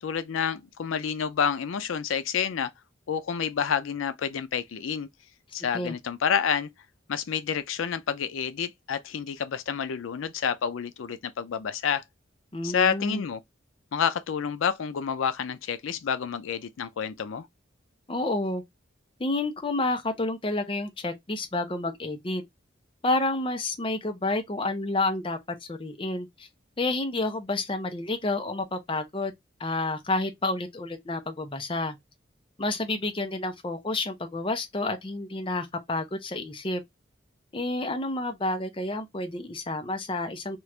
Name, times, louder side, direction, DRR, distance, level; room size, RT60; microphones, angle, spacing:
voice 1, 0.0-2.7 3.1-5.1 5.5-6.7 7.1-12.0 12.6-13.4 13.9-17.5, left 7 dB, 85° left, 0.4 m, -29 dB
voice 2, 12.5-13.2 18.1-18.6 19.2-22.4 23.0-26.5 26.8-29.3 29.6-32.0 32.6-36.8 37.5-40.6, left 2 dB, 25° left, 0.5 m, -29 dB
3.0 x 2.4 x 3.1 m
head